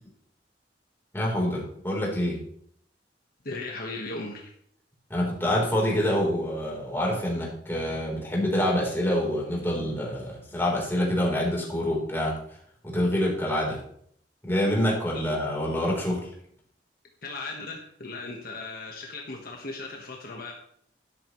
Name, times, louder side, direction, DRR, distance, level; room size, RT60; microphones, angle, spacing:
voice 1, 1.1-2.4 5.1-12.3 12.8-13.8 14.4-16.3, left 1 dB, 15° left, -3 dB, 3.8 m, -26 dB
voice 2, 3.4-4.5 15.1-15.2 17.2-20.5, left 3 dB, 55° left, 1 dB, 1.4 m, -37 dB
12.0 x 11.5 x 3.2 m, 0.65 s
head